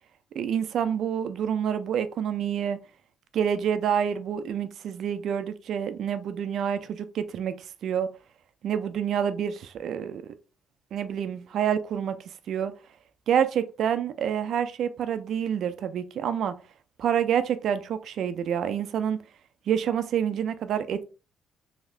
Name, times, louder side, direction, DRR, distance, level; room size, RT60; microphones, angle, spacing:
voice 1, 0.4-2.8 3.3-7.5 7.8-8.1 8.6-10.3 10.9-12.2 12.5-12.7 13.3-16.5 17.0-19.2 19.7-21.0, right 8 dB, 70° right, 0.4 m, -27 dB
3.2 x 2.7 x 2.4 m
cardioid pair, 90°, 0 cm